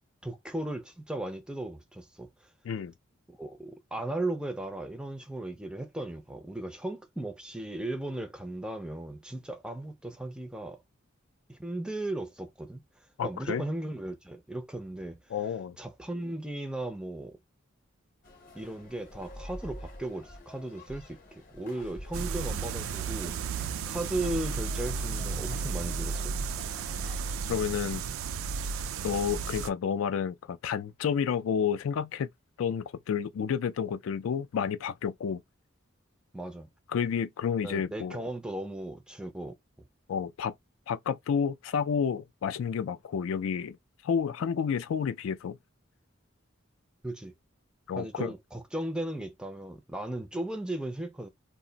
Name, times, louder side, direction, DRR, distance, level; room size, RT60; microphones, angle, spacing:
voice 1, 0.2-2.5 3.3-10.8 11.5-12.8 13.2-15.2 15.8-17.3 18.5-26.5 36.3-36.7 37.6-39.5 47.0-47.3 48.0-51.3, right 1 dB, 5° right, 0.4 m, -36 dB
voice 2, 13.2-13.6 15.3-15.8 27.5-28.0 29.0-32.3 32.6-35.4 36.9-38.2 40.1-40.5 40.9-43.8 44.0-45.6 47.9-48.3, left 7 dB, 80° left, 0.3 m, -30 dB
sound 1, 18.2-27.2, left 1 dB, 40° left, 0.7 m, -49 dB
sound 2, 22.1-29.7, right 5 dB, 85° right, 0.3 m, -33 dB
2.5 x 2.0 x 3.8 m
head